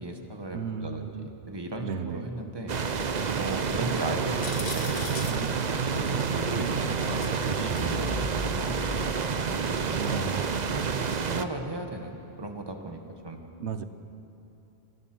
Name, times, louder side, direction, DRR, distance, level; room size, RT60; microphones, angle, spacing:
voice 1, 0.0-2.8 3.4-5.6 5.8-9.1 9.5-10.4 11.2-13.4, right 2 dB, 20° right, 4 dB, 1.6 m, -37 dB
voice 2, 0.5-1.3 1.8-2.2 9.9-10.5 13.6-13.8, right 6 dB, 85° right, 10 dB, 1.2 m, -34 dB
sound 1, 2.7-11.5, right 5 dB, 45° right, 0.8 m, -29 dB
sound 2, 4.4-5.4 7.2-7.9 8.6-8.7 10.4-10.5, left 4 dB, 70° left, 1.7 m, -39 dB
sound 3, 7.4-9.2, equal, 5° left, 1.7 m, -36 dB
26.5 x 16.5 x 6.2 m, 2.8 s
omnidirectional pair, 1.1 m